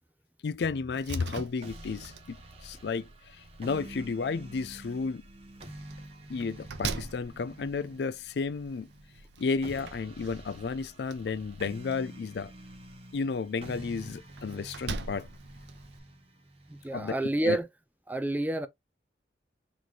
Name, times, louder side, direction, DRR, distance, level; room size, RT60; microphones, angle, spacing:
voice 1, 0.4-2.4 2.6-5.2 6.3-8.9 9.4-12.5 13.1-15.3 16.9-17.2 17.4-17.6, left 4 dB, 75° left, 0.4 m, -32 dB
Slam, 0.9-16.0, right 4 dB, 90° right, 0.6 m, -44 dB
sound 1, 1.6-17.6, right 1 dB, 35° right, 1.1 m, -48 dB
voice 2, 16.7-17.7 18.1-18.7, right 2 dB, 10° right, 0.4 m, -29 dB
4.1 x 3.0 x 3.1 m
head